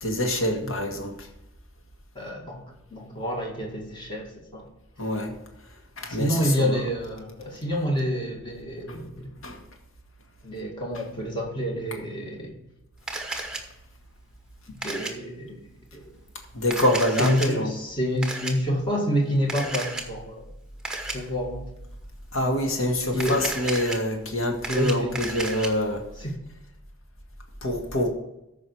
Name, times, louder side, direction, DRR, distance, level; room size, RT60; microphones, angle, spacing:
voice 1, 0.0-1.3 5.0-5.3 6.0-6.8 8.9-9.0 9.4-9.6 16.5-17.7 21.2-21.3 22.3-26.0 27.6-28.1, left 1 dB, 85° left, 2 dB, 2.1 m, -26 dB
voice 2, 2.2-2.6 2.9-4.7 6.1-9.3 10.4-12.6 14.7-15.6 15.9-16.0 17.2-20.4 21.1-21.7 23.1-23.4 24.7-25.2 26.2-26.4, equal, 25° left, 0 dB, 2.0 m, -28 dB
Camera, 13.1-13.6 14.8-15.1 16.6-17.5 18.2-18.5 19.5-20.1 20.8-21.2 23.1-24.0 24.4-25.7, right 2 dB, 5° right, 1.0 m, -32 dB
14.0 x 5.5 x 4.7 m, 0.88 s
head